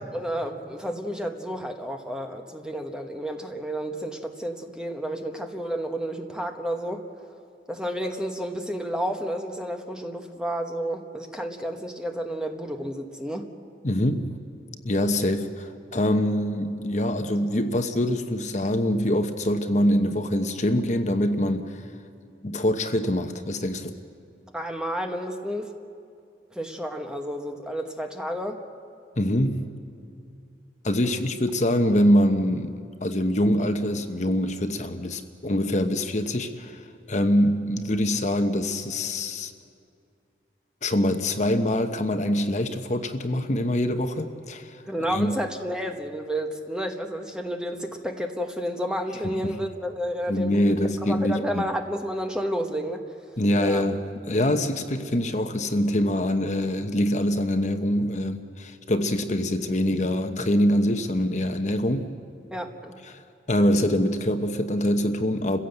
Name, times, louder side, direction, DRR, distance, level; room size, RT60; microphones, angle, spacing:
voice 1, 0.0-7.1 7.7-13.5 24.5-25.7 26.5-28.6 44.9-53.0 53.6-53.8 62.5-63.0, equal, 5° right, 4 dB, 1.1 m, -31 dB
voice 2, 13.8-14.4 14.8-21.8 22.4-23.9 29.2-29.8 30.8-36.8 37.1-39.5 40.8-44.8 45.1-45.4 49.4-49.6 50.3-51.6 53.4-62.1 63.1-63.2 63.5-65.6, left 1 dB, 40° left, 7 dB, 1.0 m, -24 dB
29.0 x 16.0 x 8.0 m, 2.4 s
head